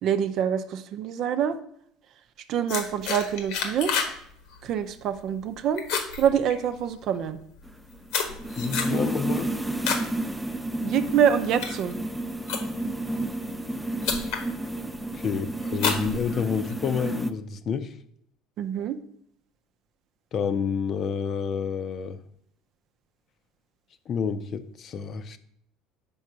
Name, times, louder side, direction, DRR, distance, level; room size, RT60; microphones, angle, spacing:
voice 1, 0.0-1.6 2.5-3.9 4.6-5.8 6.2-7.4 10.8-12.0 18.6-19.0, right 8 dB, 55° right, 0.6 m, -25 dB
sound 1, 2.7-4.2 4.5-4.8 5.2-5.5 5.8-7.0 7.6-10.1 10.5-10.8 11.3-13.0 13.7-13.8 14.0-14.5 14.9-15.3 15.7-16.7, left 6 dB, 75° left, 1.2 m, -30 dB
sound 2, 7.7-17.3, right 2 dB, 5° right, 0.5 m, -31 dB
voice 2, 8.6-9.5 15.1-17.9 20.3-22.2 24.1-25.4, left 6 dB, 45° left, 0.6 m, -29 dB
5.4 x 4.7 x 6.1 m
supercardioid pair, 100°, 0 cm